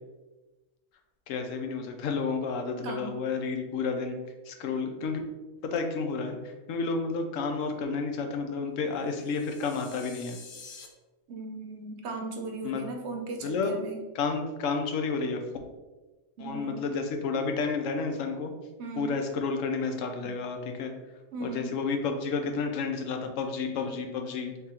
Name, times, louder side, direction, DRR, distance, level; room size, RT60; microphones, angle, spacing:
voice 1, 1.3-4.1 4.5-5.2 5.6-10.4 12.6-12.8 13.4-13.7 14.1-15.4 16.4-18.5 19.0-20.9 21.4-24.5, left 4 dB, 80° left, 5 dB, 1.0 m, -31 dB
voice 2, 2.8-3.2 11.3-14.0 16.4-16.9 18.8-19.2 20.2-20.4 21.3-21.7, right 3 dB, 65° right, 2 dB, 0.8 m, -37 dB
sound 1, 9.0-10.9, left 5 dB, 60° left, 0.5 m, -48 dB
3.6 x 3.3 x 2.8 m, 1.2 s
omnidirectional pair, 1.3 m